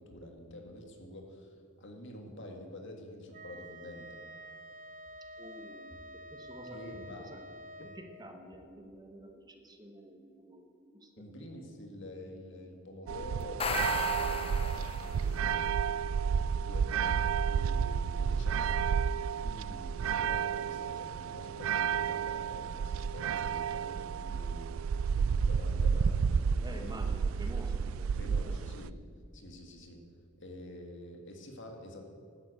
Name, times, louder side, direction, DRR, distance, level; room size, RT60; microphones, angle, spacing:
voice 1, 0.0-4.2 6.7-7.3 7.8-8.0 11.2-15.7 16.2-27.2 28.1-29.0 29.3-30.0 30.4-32.1, left 1 dB, 60° left, 3 dB, 2.0 m, -48 dB
Wind instrument woodwind instrument, 3.3-8.1, equal, 40° right, 0.9 m, -48 dB
voice 2, 5.4-6.8 7.2-7.4 7.8-11.4 26.6-28.4, right 1 dB, 20° right, 5 dB, 1.1 m, -49 dB
sound 1, 13.1-28.9, right 6 dB, 70° right, 0.3 m, -31 dB
sound 2, 13.4-15.4, left 5 dB, 25° left, 0.6 m, -36 dB
12.0 x 9.7 x 8.3 m, 2.2 s
head